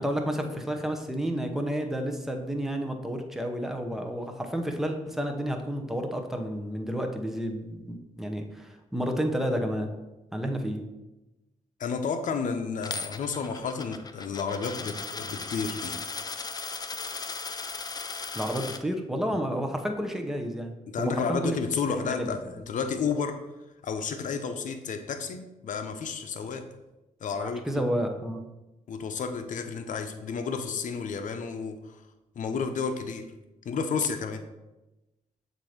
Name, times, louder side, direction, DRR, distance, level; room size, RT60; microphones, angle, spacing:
voice 1, 0.0-9.9 10.3-10.8 18.3-21.6 21.9-22.4 27.4-28.5, equal, 5° right, 4 dB, 0.8 m, -31 dB
voice 2, 11.8-16.0 20.9-23.4 23.8-26.7 27.2-27.6 28.9-32.0 32.4-33.3 33.6-34.5, left 5 dB, 65° left, 7 dB, 0.7 m, -31 dB
Coin (dropping), 12.8-18.8, left 4 dB, 30° left, 0.4 m, -37 dB
7.4 x 2.7 x 5.0 m, 1.0 s
cardioid pair, 95°, 14 cm